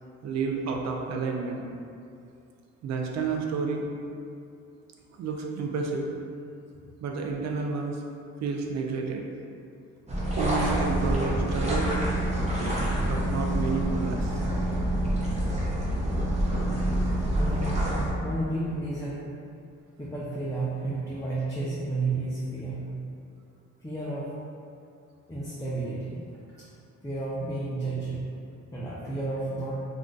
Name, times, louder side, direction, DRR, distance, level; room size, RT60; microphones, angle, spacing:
voice 1, 0.2-1.7 2.8-3.9 5.1-6.1 7.0-8.0 8.4-9.2 10.3-11.9 13.0-14.4, right 4 dB, 60° right, 1 dB, 0.5 m, -30 dB
sound 1, 10.1-18.1, right 1 dB, 20° right, 0.7 m, -27 dB
voice 2, 17.4-17.8 18.2-19.2 20.0-22.9 23.8-24.3 25.3-26.2 26.6-26.7 27.0-28.2 28.7-29.8, right 2 dB, 10° left, -8 dB, 0.4 m, -32 dB
2.4 x 2.3 x 3.8 m, 2.4 s
cardioid pair, 90°, 30 cm